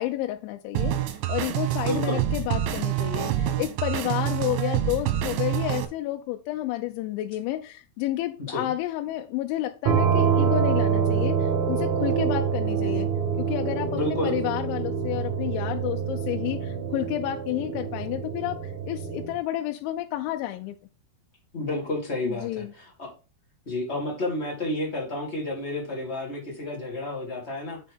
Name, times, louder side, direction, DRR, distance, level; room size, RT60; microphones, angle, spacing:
voice 1, 0.0-13.1 13.4-20.8 22.3-22.7, left 14 dB, 90° left, 3.0 m, -30 dB
sound 1, 0.8-5.9, right 12 dB, 85° right, 3.4 m, -27 dB
voice 2, 1.8-2.2 8.4-8.7 13.9-14.3 21.5-23.1 23.6-27.8, left 1 dB, 25° left, 1.5 m, -31 dB
sound 2, 9.9-19.4, right 7 dB, 65° right, 2.1 m, -26 dB
8.5 x 4.9 x 3.5 m
omnidirectional pair, 5.3 m